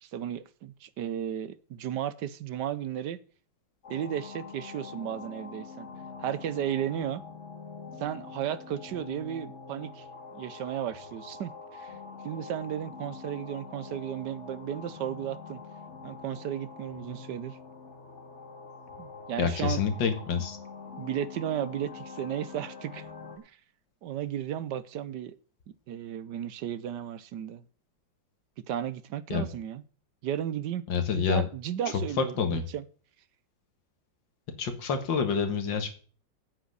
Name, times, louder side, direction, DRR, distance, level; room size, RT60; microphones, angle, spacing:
voice 1, 0.0-3.2 3.9-5.9 6.2-7.2 8.0-10.1 10.3-11.9 12.2-15.6 16.0-17.6 19.0-19.8 21.0-23.1 23.4-23.6 24.0-25.3 25.9-27.6 28.7-29.8 30.2-30.8 31.1-32.8, right 10 dB, 70° right, 1.3 m, -34 dB
sound 1, 3.8-23.4, left 4 dB, 40° left, 2.0 m, -45 dB
voice 2, 19.4-20.6 29.3-29.5 30.9-31.4 32.2-32.6 34.6-36.0, left 6 dB, 80° left, 2.3 m, -27 dB
9.0 x 7.8 x 6.7 m
omnidirectional pair, 2.0 m